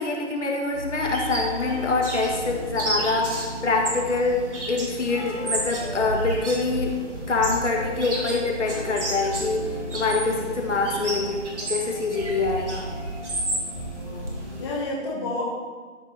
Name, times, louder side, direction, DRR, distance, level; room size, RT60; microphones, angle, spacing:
voice 1, 0.0-6.9 7.3-11.4 11.7-12.9, left 3 dB, 70° left, 0 dB, 1.9 m, -25 dB
sound 1, 0.7-14.7, equal, 15° right, 1.3 m, -34 dB
sound 2, 1.0-14.8, right 2 dB, 70° right, 2.8 m, -34 dB
voice 2, 10.2-10.6 14.0-14.3 14.6-15.4, left 2 dB, 20° left, -4 dB, 1.1 m, -31 dB
13.0 x 4.5 x 4.2 m, 1.5 s
hypercardioid pair, 160°, 37 cm